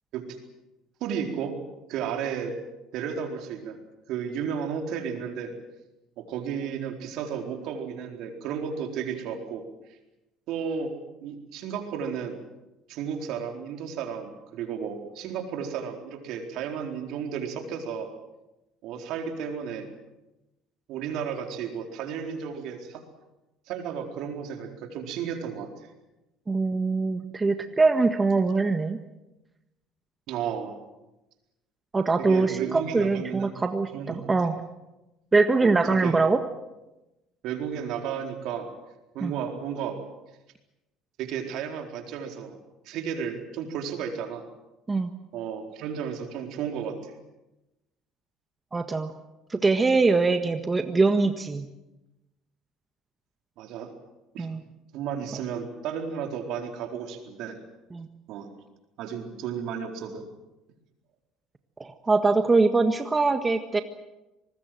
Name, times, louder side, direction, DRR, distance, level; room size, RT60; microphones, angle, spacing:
voice 1, 1.0-1.6 1.9-2.6 2.9-3.8 4.1-5.5 6.2-9.6 10.5-10.9 11.2-12.4 12.9-18.1 18.8-19.9 20.9-23.0 23.7-25.9 30.3-30.8 32.2-33.6 33.9-34.3 35.6-35.8 36.0-36.2 37.4-38.7 39.1-40.0 41.2-42.6 42.9-44.4 45.3-47.2 53.6-53.9 54.3-54.5 54.9-57.6 58.3-58.5 59.0-60.3, right 7 dB, 70° right, 4 dB, 4.2 m, -33 dB
voice 2, 26.5-29.0 31.9-34.5 35.3-36.4 39.2-39.3 44.9-45.1 48.7-49.1 49.5-51.7 54.4-54.6 57.9-58.1 61.8-63.8, right 3 dB, 25° right, 8 dB, 1.6 m, -23 dB
25.0 x 20.5 x 7.8 m, 0.99 s
supercardioid pair, 80°, 0 cm